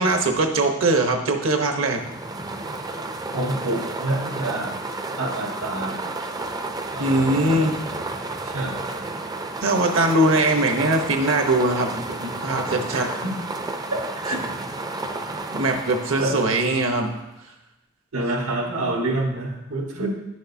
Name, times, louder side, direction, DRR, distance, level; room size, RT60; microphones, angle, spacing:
voice 1, 0.0-2.0 7.0-7.8 9.6-13.1 15.5-17.1, right 2 dB, 65° right, 4 dB, 0.9 m, -21 dB
sound 1, 1.8-17.3, right 2 dB, 20° right, 0.4 m, -32 dB
voice 2, 3.3-4.8 5.2-6.2 6.9-7.7 8.4-8.9 12.9-13.3 13.9-14.4 16.2-16.4 18.1-20.1, right 1 dB, 90° right, 0 dB, 1.5 m, -28 dB
10.0 x 6.4 x 2.7 m, 0.96 s
head